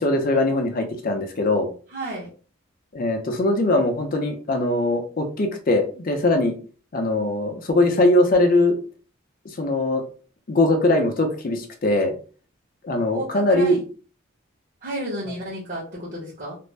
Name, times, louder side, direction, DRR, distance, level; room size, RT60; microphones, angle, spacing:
voice 1, 0.0-1.7 2.9-6.5 6.9-8.8 9.6-10.0 10.5-12.1 12.8-13.8, left 2 dB, 45° left, 4 dB, 0.6 m, -21 dB
voice 2, 1.9-2.3 13.1-13.8 14.8-16.6, right 1 dB, 40° right, -8 dB, 0.9 m, -32 dB
2.5 x 2.1 x 3.2 m, 0.39 s
head